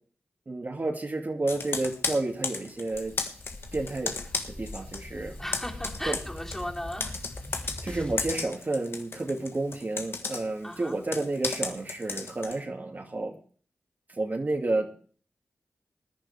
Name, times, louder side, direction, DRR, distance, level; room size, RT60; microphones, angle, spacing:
voice 1, 0.5-3.1 3.7-4.2 4.6-5.4 6.1-6.2 7.8-13.3 14.1-14.9, right 2 dB, 45° right, 1 dB, 2.4 m, -30 dB
Computer keyboard, 1.5-5.1 5.3-12.6, left 4 dB, 70° left, 1.6 m, -34 dB
sound 1, 2.9-8.4, left 1 dB, 25° left, 2.1 m, -42 dB
voice 2, 5.4-7.2 10.6-11.0, left 1 dB, 10° left, -1 dB, 3.7 m, -36 dB
19.0 x 10.5 x 3.5 m, 0.43 s
cardioid pair, 45°, 4 cm